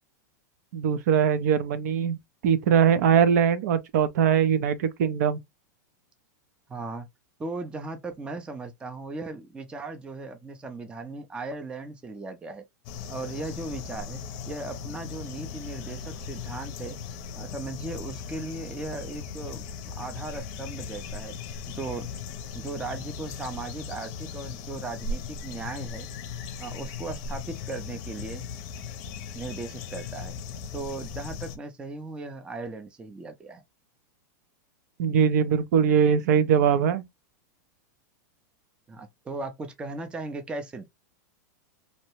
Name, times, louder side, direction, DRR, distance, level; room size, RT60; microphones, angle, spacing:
voice 1, 0.7-2.2 2.4-5.4 35.0-37.1, right 7 dB, 65° right, 0.5 m, -21 dB
voice 2, 6.7-7.1 7.4-12.6 13.1-14.2 14.5-17.0 17.3-21.3 21.7-22.1 22.5-26.1 26.6-28.4 29.3-30.3 30.7-33.6 38.9-40.9, right 3 dB, 10° right, 0.4 m, -37 dB
sound 1, 12.8-31.6, left 5 dB, 40° left, 0.6 m, -38 dB
2.7 x 2.1 x 2.9 m
supercardioid pair, 145°, 10 cm